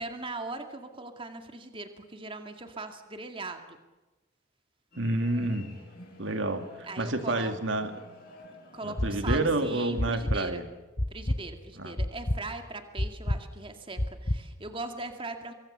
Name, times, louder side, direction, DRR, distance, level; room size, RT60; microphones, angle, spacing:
voice 1, 0.0-3.8 6.8-7.5 8.7-10.6 11.1-15.5, right 3 dB, 25° right, 6 dB, 2.2 m, -40 dB
sound 1, 4.9-10.2, left 1 dB, 45° left, 7.7 m, -51 dB
voice 2, 4.9-5.9 6.2-7.9 8.8-10.6 11.8-11.9, right 2 dB, 70° right, 7 dB, 2.3 m, -29 dB
sound 2, 9.0-9.4 10.0-10.4 11.0-11.4 12.0-12.4 13.0-13.4 14.0-14.4, left 1 dB, 30° left, 1.0 m, -27 dB
25.0 x 24.5 x 6.7 m, 1.1 s
head